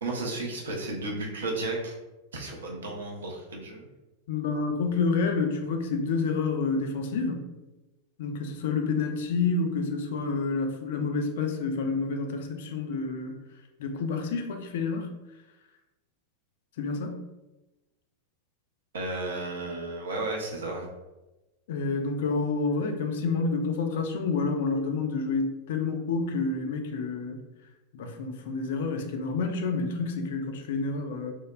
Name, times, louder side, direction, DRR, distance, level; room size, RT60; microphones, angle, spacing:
voice 1, 0.0-1.9 2.3-3.9 18.9-20.9, right 2 dB, 65° right, -1 dB, 0.5 m, -33 dB
voice 2, 4.3-7.5 8.2-13.4 13.8-15.1 16.8-17.2 21.7-27.4 27.9-31.3, left 4 dB, 55° left, 5 dB, 0.3 m, -29 dB
3.0 x 2.1 x 2.2 m, 1.1 s
figure-of-eight pair, 90°, 0 cm